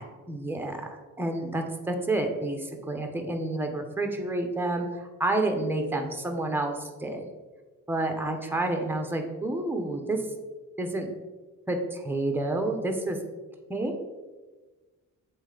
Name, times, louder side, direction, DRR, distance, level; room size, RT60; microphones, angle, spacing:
voice 1, 0.0-7.2 7.9-10.2 10.8-11.1 11.7-13.2 13.7-14.0, right 2 dB, 5° right, 4 dB, 0.7 m, -29 dB
7.8 x 3.2 x 3.8 m, 1.3 s
cardioid pair, 130°, 33 cm